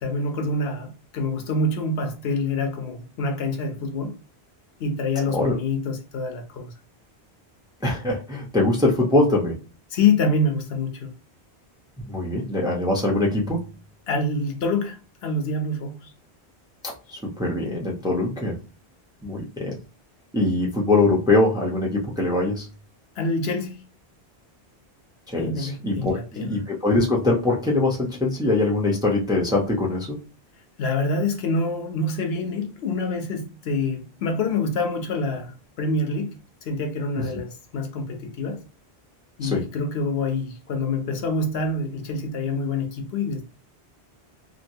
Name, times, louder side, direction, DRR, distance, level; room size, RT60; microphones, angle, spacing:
voice 1, 0.0-4.2 4.8-6.7 9.9-11.1 14.1-16.1 23.2-23.8 25.4-26.5 30.8-38.6 39.4-43.4, left 3 dB, 70° left, 0.9 m, -26 dB
voice 2, 7.8-9.6 12.1-13.7 17.1-18.6 19.2-19.8 20.3-22.7 25.3-30.2 37.2-37.3 39.4-39.6, left 2 dB, 5° right, 0.6 m, -23 dB
2.9 x 2.6 x 2.7 m
omnidirectional pair, 1.1 m